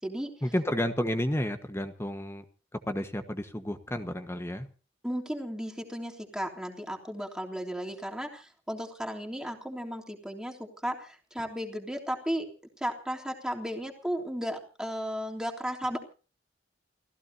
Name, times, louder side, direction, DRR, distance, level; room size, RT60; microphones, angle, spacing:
voice 1, 0.4-2.4 2.9-4.7, equal, 15° left, 8 dB, 1.3 m, -31 dB
voice 2, 5.0-12.5 12.8-16.0, equal, 5° right, 0 dB, 3.3 m, -35 dB
29.5 x 16.0 x 2.8 m, 0.38 s
head